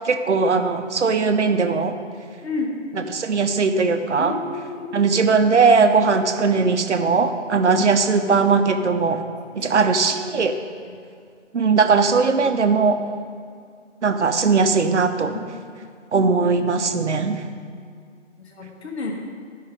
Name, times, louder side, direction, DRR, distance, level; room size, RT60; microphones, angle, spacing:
voice 1, 0.0-1.9 3.1-4.3 4.9-9.2 9.5-10.5 11.5-13.0 14.0-15.4 16.1-17.4, right 4 dB, 65° right, 7 dB, 0.7 m, -19 dB
voice 2, 2.4-2.8 4.2-5.0 10.8-10.9 15.3-15.4 15.8-15.9 16.2-16.3 18.4-19.1, left 3 dB, 60° left, 0 dB, 1.3 m, -30 dB
9.6 x 5.5 x 5.1 m, 2.2 s
figure-of-eight pair, 160°, 37 cm